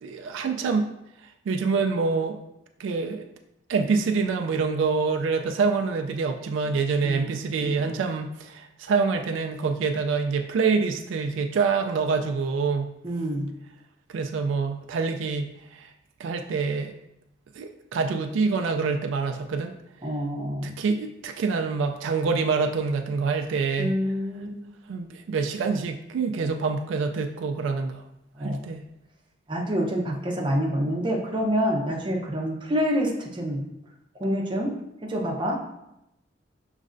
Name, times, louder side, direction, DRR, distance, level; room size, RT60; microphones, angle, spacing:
voice 1, 0.0-0.9 1.5-2.4 2.8-3.2 3.7-12.9 14.1-15.9 16.2-16.9 17.5-19.8 20.6-24.0 24.9-28.0 28.4-28.8, right 4 dB, 80° right, 4 dB, 0.3 m, -26 dB
voice 2, 7.6-8.0 13.0-13.5 20.0-20.7 23.8-24.6 28.4-28.6 29.5-33.6 34.1-34.7 35.0-35.6, equal, 25° right, -2 dB, 0.7 m, -27 dB
6.3 x 3.2 x 2.5 m, 0.86 s
head